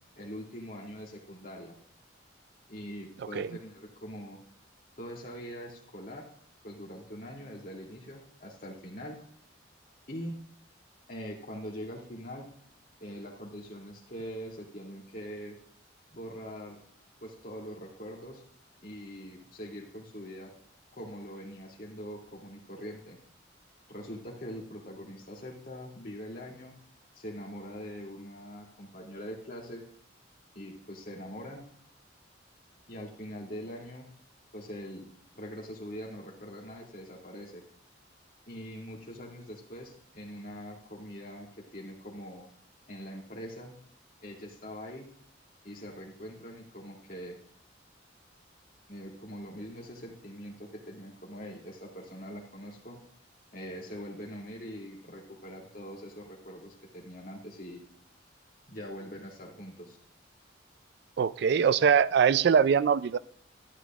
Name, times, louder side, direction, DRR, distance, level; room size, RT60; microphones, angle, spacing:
voice 1, 0.2-1.7 2.7-4.4 5.0-6.3 6.6-9.2 10.1-10.4 11.1-12.5 13.0-15.6 16.1-16.8 17.2-18.4 18.8-20.5 20.9-23.2 23.9-26.8 27.1-29.8 30.5-31.7 32.9-34.1 34.5-35.1 35.3-37.6 38.5-42.5 42.9-43.8 44.2-45.1 45.6-47.4 48.9-53.0 53.5-57.8 58.7-60.0, equal, 50° left, -2 dB, 2.7 m, -43 dB
voice 2, 61.2-63.2, right 7 dB, 60° right, 17 dB, 0.3 m, -23 dB
13.0 x 9.9 x 2.4 m, 0.64 s
head